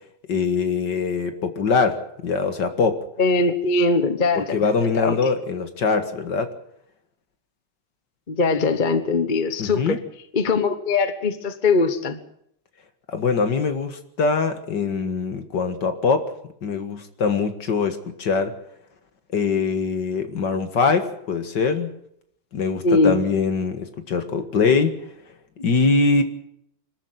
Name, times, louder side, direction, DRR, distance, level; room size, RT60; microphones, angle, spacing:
voice 1, 0.3-3.0 4.4-6.5 9.6-10.0 13.1-16.3 16.6-18.6 19.3-21.9 22.5-25.0 25.6-26.2, left 4 dB, 60° left, 8 dB, 2.3 m, -23 dB
voice 2, 3.2-4.6 4.9-5.4 8.3-10.0 10.3-12.2 22.8-23.2, left 3 dB, 30° left, 10 dB, 1.1 m, -21 dB
25.5 x 13.0 x 8.0 m, 0.73 s
omnidirectional pair, 2.2 m